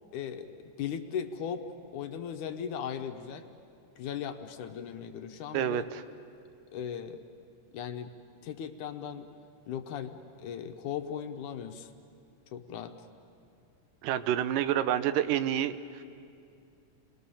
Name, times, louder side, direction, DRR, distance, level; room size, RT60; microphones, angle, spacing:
voice 1, 0.1-1.6 1.9-3.5 4.0-5.9 6.7-7.2 7.7-8.1 8.4-9.3 9.7-11.9 12.5-12.9, left 8 dB, 75° left, 6 dB, 2.5 m, -37 dB
voice 2, 5.5-6.0 14.0-16.0, right 10 dB, 85° right, 12 dB, 2.4 m, -28 dB
29.5 x 21.5 x 7.1 m, 2.5 s
omnidirectional pair, 3.7 m